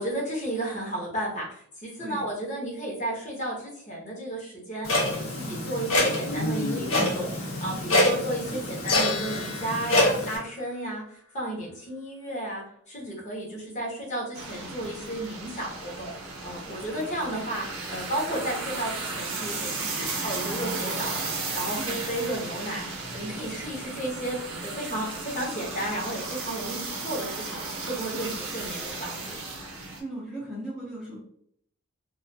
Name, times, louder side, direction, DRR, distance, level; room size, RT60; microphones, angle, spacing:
voice 1, 0.0-11.0 11.3-16.1 16.4-21.2 21.5-24.4 24.6-27.6 27.9-29.4, right 1 dB, 30° left, -3 dB, 0.8 m, -33 dB
Clock, 4.8-10.4, left 1 dB, 60° left, 0.7 m, -26 dB
sound 1, 8.9-11.3, left 5 dB, 85° left, 0.4 m, -35 dB
sound 2, 14.3-30.0, right 3 dB, 60° right, 0.6 m, -35 dB
voice 2, 28.1-28.4 30.0-31.2, right 1 dB, ahead, -8 dB, 0.5 m, -37 dB
2.3 x 2.3 x 2.6 m, 0.67 s
head